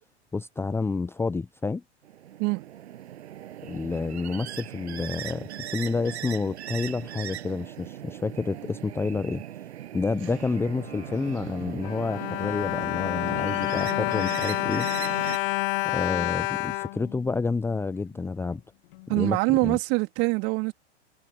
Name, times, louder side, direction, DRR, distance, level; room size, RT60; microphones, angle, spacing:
voice 1, 0.3-1.8 3.6-9.4 9.9-14.9 15.8-18.6 19.1-19.8, left 4 dB, 5° left, 0.7 m, -29 dB
sound 1, 2.1-15.4, right 11 dB, 65° right, 7.2 m, -39 dB
sound 2, 10.1-13.7, left 8 dB, 80° left, 3.3 m, -48 dB
Bowed string instrument, 11.6-17.8 18.5-18.6 18.9-19.1, left 24 dB, 50° left, 1.6 m, -29 dB
voice 2, 19.1-20.7, right 27 dB, 45° right, 2.9 m, -24 dB
hypercardioid pair, 105°, 35 cm